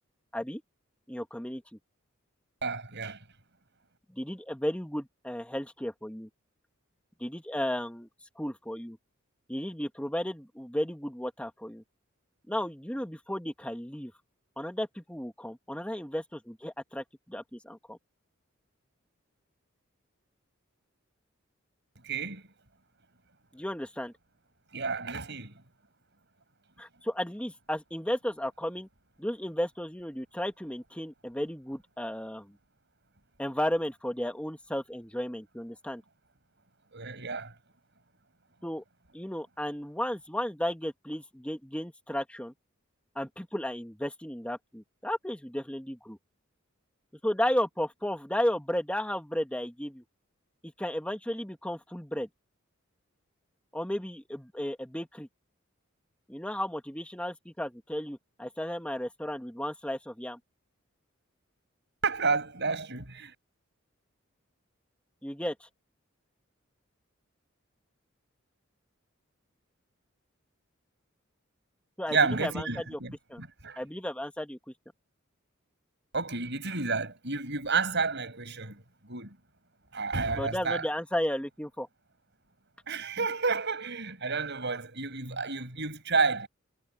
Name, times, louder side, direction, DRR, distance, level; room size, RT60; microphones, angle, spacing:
voice 1, 1.1-1.6 4.1-6.3 7.2-8.1 8.4-9.0 9.5-11.8 12.5-14.1 14.6-18.0 23.5-24.1 26.8-28.9 29.2-32.6 33.4-36.0 38.6-38.8 39.1-42.5 43.2-46.2 47.2-50.0 50.6-52.3 53.7-55.3 56.3-60.4 65.2-65.7 72.0-73.0 73.3-73.4 73.8-74.6 80.3-81.9, left 1 dB, 5° left, 2.0 m, -34 dB
voice 2, 2.6-3.2 22.0-22.4 24.7-25.5 36.9-37.5 62.0-63.3 72.1-73.1 73.4-73.8 76.1-79.4 79.9-80.8 82.9-86.5, right 4 dB, 60° right, 7.4 m, -30 dB
head